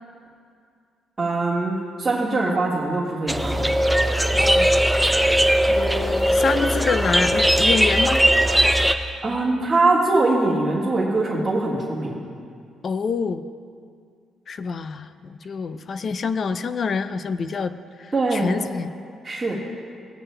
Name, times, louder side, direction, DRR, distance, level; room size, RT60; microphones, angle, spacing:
voice 1, 1.2-3.7 8.9-12.2 18.1-18.5 19.2-19.6, right 2 dB, 20° right, -8 dB, 1.6 m, -22 dB
sound 1, 3.3-8.9, right 1 dB, 5° right, 0.5 m, -19 dB
voice 2, 4.4-4.7 5.7-8.2 12.8-13.4 14.5-17.7 18.0-18.9, left 5 dB, 50° left, 12 dB, 0.4 m, -26 dB
17.0 x 9.4 x 2.2 m, 2.3 s
cardioid pair, 90°, 0 cm